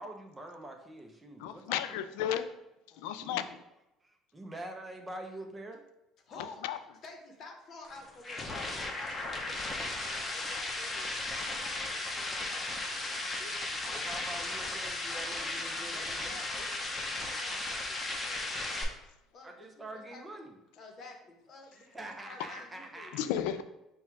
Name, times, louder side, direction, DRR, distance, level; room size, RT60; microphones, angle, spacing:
voice 1, 0.0-2.0 3.2-3.6 4.0-5.8 13.9-16.4 19.4-20.6 21.7-23.3, right 1 dB, 15° right, 3 dB, 0.7 m, -45 dB
voice 2, 1.4-2.6 3.0-3.4 6.6-6.8 23.1-23.6, left 10 dB, 85° left, 11 dB, 0.3 m, -33 dB
voice 3, 6.3-6.6 7.0-11.1 11.6-13.5 13.9-14.2 14.4-14.8 15.1-19.0 19.3-20.2 20.8-23.4, left 3 dB, 50° left, 3 dB, 0.9 m, -51 dB
sound 1, 7.8-18.8, left 2 dB, 25° left, 0.8 m, -36 dB
4.2 x 2.3 x 4.5 m, 0.92 s
supercardioid pair, 105°, 0 cm